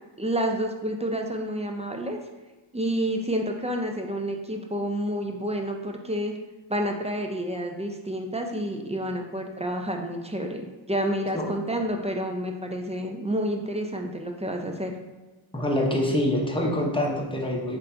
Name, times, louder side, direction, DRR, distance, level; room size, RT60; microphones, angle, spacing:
voice 1, 0.2-2.2 2.7-6.3 6.7-14.9, equal, 15° right, 2 dB, 0.5 m, -29 dB
voice 2, 15.5-17.8, left 1 dB, 10° left, -2 dB, 0.9 m, -25 dB
3.3 x 2.7 x 4.3 m, 1.2 s
cardioid pair, 40°, 48 cm